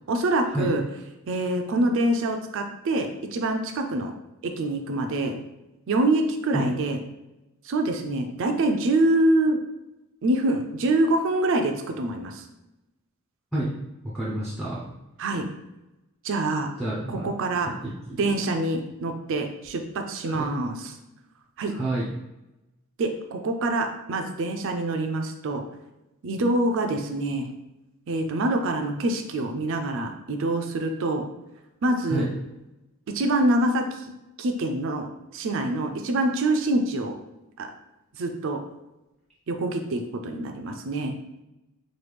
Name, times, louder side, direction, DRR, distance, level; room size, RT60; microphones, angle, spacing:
voice 1, 0.1-0.8 1.3-4.1 4.4-5.3 5.9-7.0 7.6-9.6 10.2-12.4 15.2-15.4 16.2-16.7 17.2-17.7 18.2-20.8 21.6-21.7 23.0-25.6 26.2-27.5 28.1-31.2 31.8-32.3 33.1-33.9 34.4-37.1 37.6-37.7 38.2-38.6 39.5-41.2, right 2 dB, 60° right, 5 dB, 0.4 m, -25 dB
voice 2, 13.5-14.9 16.8-18.3 20.2-20.6 21.7-22.1 32.1-32.3, right 1 dB, ahead, -7 dB, 0.4 m, -30 dB
3.1 x 2.3 x 3.3 m, 0.97 s
head